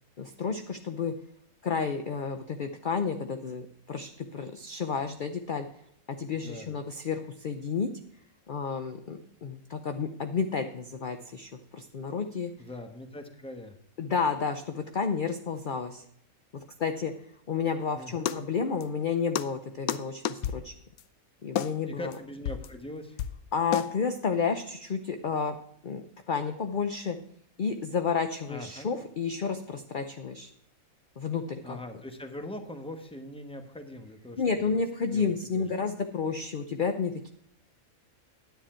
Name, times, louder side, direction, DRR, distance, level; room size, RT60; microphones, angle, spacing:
voice 1, 0.2-1.1 1.6-5.7 6.1-7.9 8.5-12.5 14.0-16.0 16.5-17.1 17.5-20.7 21.4-22.1 23.5-25.6 25.8-27.2 27.6-30.5 31.2-31.8 34.4-37.3, left 5 dB, 50° left, 7 dB, 0.7 m, -31 dB
voice 2, 6.3-6.7 12.6-13.7 17.9-18.3 21.8-23.2 28.5-28.9 31.6-34.8 35.1-35.7, left 1 dB, 5° left, 6 dB, 1.1 m, -42 dB
sound 1, 18.3-18.4 18.8-18.9 19.3-19.5 19.9-20.0 20.2-20.6 21.0-21.1 21.6-21.7 22.1-22.2 22.5-22.7 23.2-23.4 23.7-23.9, left 10 dB, 85° left, 1.1 m, -30 dB
10.0 x 9.1 x 4.4 m, 0.70 s
omnidirectional pair, 1.5 m